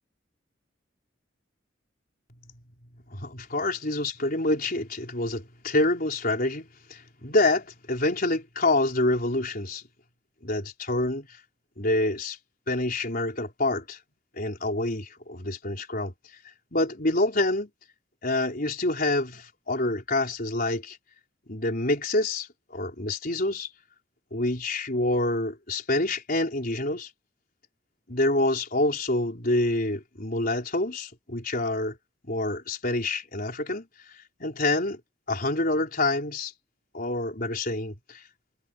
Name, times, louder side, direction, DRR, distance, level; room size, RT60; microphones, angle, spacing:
voice 1, 3.1-9.8 10.4-11.3 11.8-12.4 12.7-14.0 14.3-16.1 16.7-17.7 18.2-21.0 21.5-23.7 24.3-27.1 28.1-31.9 32.2-33.9 34.4-35.0 35.3-36.5 36.9-38.2, left 2 dB, 50° left, 4.4 m, -27 dB
head